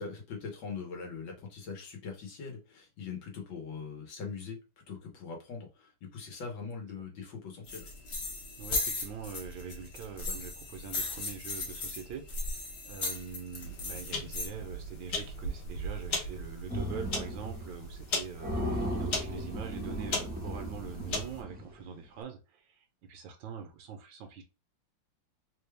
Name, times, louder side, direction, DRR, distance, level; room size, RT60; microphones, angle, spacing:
voice 1, 0.0-7.9 10.3-10.4 10.9-11.0, left 5 dB, 85° left, 2 dB, 2.0 m, -42 dB
sound 1, 7.7-14.5, left 3 dB, 45° left, 0.9 m, -37 dB
voice 2, 8.6-24.4, right 6 dB, 75° right, 5 dB, 1.5 m, -44 dB
sound 2, 13.6-21.4, left 1 dB, 65° left, 1.7 m, -38 dB
sound 3, 16.7-17.7 18.0-18.1 18.4-21.8, equal, 10° right, 0.5 m, -36 dB
4.2 x 2.3 x 3.3 m, 0.29 s
omnidirectional pair, 2.1 m